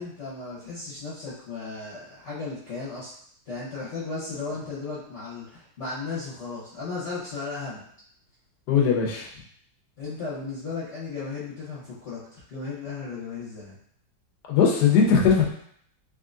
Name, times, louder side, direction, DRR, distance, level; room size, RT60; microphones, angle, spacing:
voice 1, 0.0-3.1 3.4-7.8 10.0-13.8, left 4 dB, 45° left, -11 dB, 1.2 m, -35 dB
voice 2, 8.7-9.3 14.5-15.4, left 6 dB, 70° left, -1 dB, 1.3 m, -19 dB
3.7 x 3.0 x 2.5 m, 0.66 s
omnidirectional pair, 1.9 m